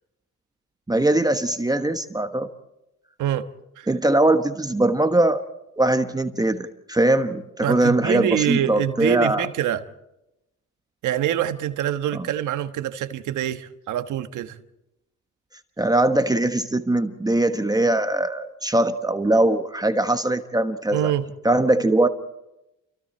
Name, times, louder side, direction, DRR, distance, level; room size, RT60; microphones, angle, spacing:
voice 1, 0.9-2.5 3.9-5.4 5.8-9.5 12.1-12.2 15.8-21.1 21.4-22.1, right 1 dB, 10° right, 1.3 m, -21 dB
voice 2, 7.6-9.8 11.0-14.6 20.9-21.3, right 11 dB, 80° right, 1.4 m, -25 dB
29.5 x 23.5 x 4.4 m
cardioid pair, 90°, 30 cm